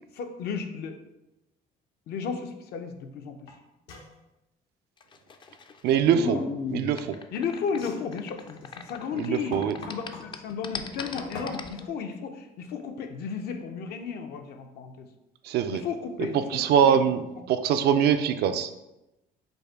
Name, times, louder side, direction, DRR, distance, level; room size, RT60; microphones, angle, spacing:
voice 1, 0.1-1.0 2.1-3.4 6.3-6.4 7.3-9.5 9.9-15.1 15.7-17.0, left 6 dB, 70° left, 6 dB, 0.6 m, -34 dB
sound 1, 3.5-3.6 3.9-4.1 6.6-7.0 7.6-10.3 10.8-11.9, left 3 dB, 85° left, 1.1 m, -42 dB
sound 2, 5.0-9.4 9.6-11.8, left 5 dB, 30° left, 0.4 m, -36 dB
voice 2, 5.8-6.4 6.7-7.2 9.2-9.8 15.4-15.8 16.3-17.2 17.5-18.7, right 8 dB, 75° right, 10 dB, 0.4 m, -23 dB
5.2 x 2.1 x 4.6 m, 0.93 s
cardioid pair, 110°, 17 cm